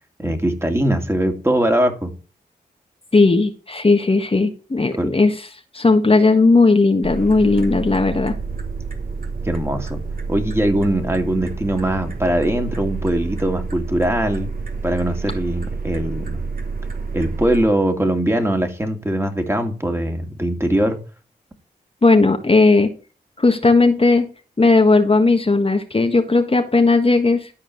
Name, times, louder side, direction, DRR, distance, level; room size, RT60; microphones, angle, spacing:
voice 1, 0.2-2.1 4.9-5.1 9.4-10.0 10.3-14.5 14.8-16.4 17.1-21.0, right 1 dB, 15° right, 5 dB, 2.6 m, -21 dB
voice 2, 3.1-5.4 5.7-8.3 22.0-22.9 23.4-24.3 24.6-27.5, left 3 dB, 30° left, 5 dB, 1.6 m, -16 dB
sound 1, 7.0-17.6, right 4 dB, 55° right, 2.8 m, -29 dB
13.0 x 4.6 x 7.1 m, 0.35 s
cardioid pair, 50°, 18 cm